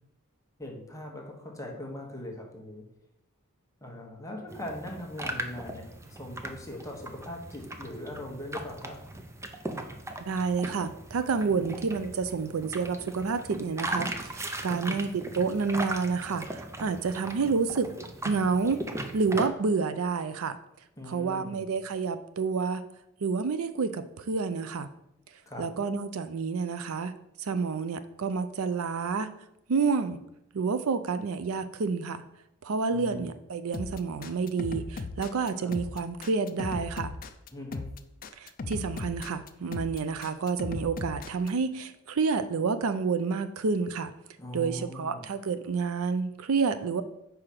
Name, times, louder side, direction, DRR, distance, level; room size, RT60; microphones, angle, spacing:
voice 1, 0.6-2.8 3.8-9.0 11.4-11.7 14.6-15.0 21.0-21.6 25.5-25.7 32.9-33.3 35.6-35.7 37.5-37.9 44.4-45.2, left 1 dB, 15° left, 0 dB, 1.1 m, -40 dB
sound 1, 4.5-19.5, right 1 dB, 15° right, 0.5 m, -39 dB
voice 2, 10.2-17.9 18.2-18.8 19.1-20.6 21.1-22.8 23.2-24.9 25.6-27.1 27.4-29.3 29.7-30.2 30.5-32.2 32.6-37.1 38.4-44.1 44.5-47.0, right 4 dB, 70° right, 12 dB, 0.5 m, -29 dB
sound 2, 33.7-41.5, left 3 dB, 40° left, 0.4 m, -37 dB
4.9 x 4.8 x 5.8 m, 0.82 s
head